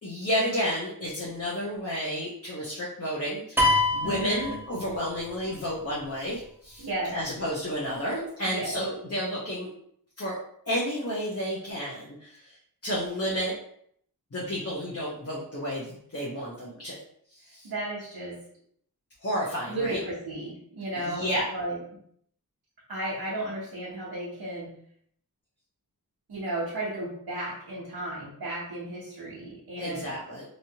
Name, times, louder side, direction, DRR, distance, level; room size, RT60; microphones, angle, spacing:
voice 1, 0.0-6.9 7.1-9.7 10.2-10.4 10.7-12.6 12.8-13.5 14.3-17.0 17.3-17.7 19.2-20.0 21.0-21.5 29.8-30.4, equal, 40° left, -5 dB, 0.8 m, -31 dB
sound 1, 3.6-5.3, left 2 dB, 5° right, 0.8 m, -25 dB
voice 2, 4.0-4.6 6.8-7.2 8.4-8.8 17.6-18.4 19.7-21.8 22.9-24.7 26.3-30.1, right 1 dB, 90° right, -6 dB, 0.9 m, -34 dB
3.1 x 2.7 x 2.8 m, 0.66 s
wide cardioid pair, 80°, 38 cm